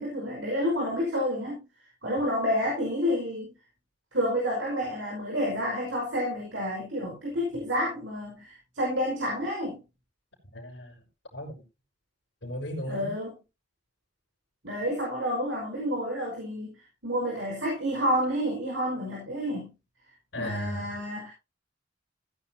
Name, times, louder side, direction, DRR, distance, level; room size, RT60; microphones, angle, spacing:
voice 1, 0.0-1.6 2.0-3.5 4.1-9.8 12.9-13.3 14.6-19.7 20.4-21.3, equal, 90° right, 5.2 m, -29 dB
voice 2, 10.5-11.1 11.3-11.6 12.4-13.1 20.3-21.0, equal, 70° left, 4.9 m, -36 dB
16.0 x 9.9 x 2.9 m
head